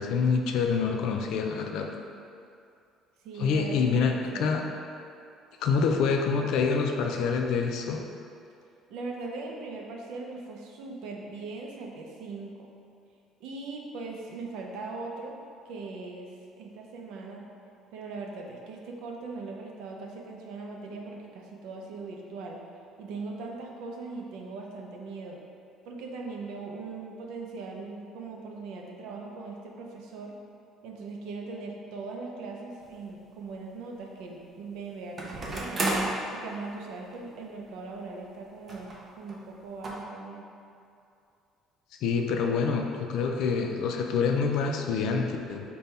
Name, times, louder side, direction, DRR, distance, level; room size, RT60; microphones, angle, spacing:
voice 1, 0.0-1.9 3.4-4.6 5.6-8.0 42.0-45.8, left 5 dB, 60° left, 3 dB, 0.4 m, -26 dB
voice 2, 3.2-4.7 8.9-12.5 13.4-15.3 15.6-16.3 16.6-17.5 17.9-22.6 23.0-25.4 25.8-30.4 30.8-35.9 36.3-38.9 39.2-40.5, right 3 dB, 70° right, 0 dB, 0.6 m, -40 dB
sound 1, 32.8-32.9 35.2-36.2 37.1-37.2 37.5-37.6 38.7-39.0 39.3-39.4 39.8-39.9, right 2 dB, 25° right, 0.5 m, -31 dB
5.2 x 2.3 x 4.1 m, 2.5 s
cardioid pair, 175°, 0 cm